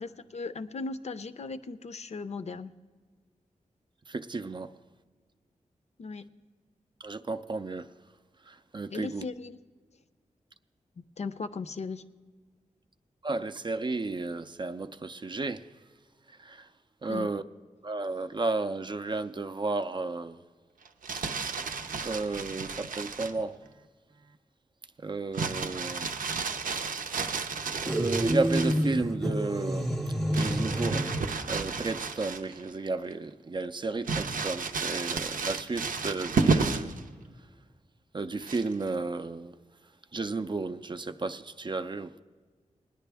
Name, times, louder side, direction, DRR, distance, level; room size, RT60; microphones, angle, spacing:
voice 1, 0.0-2.7 6.0-6.3 8.9-9.6 11.0-12.0 17.1-17.3, left 4 dB, 55° left, 0.5 m, -37 dB
voice 2, 4.1-4.7 7.0-7.9 8.5-9.2 13.2-15.6 16.4-16.7 17.0-17.4 17.8-20.4 22.0-23.6 25.0-26.1 27.9-29.9 30.3-31.1 31.5-36.9 38.1-39.5 40.1-42.2, right 3 dB, 35° right, 0.4 m, -33 dB
Crumpling crinkling, 20.8-23.4 25.3-28.9 30.3-32.7 33.1-33.2 34.0-37.0 38.4-38.9, right 4 dB, 85° right, 0.6 m, -32 dB
sound 1, 27.9-31.4, equal, ahead, 0.7 m, -29 dB
19.5 x 9.9 x 3.4 m
wide cardioid pair, 95°, 14 cm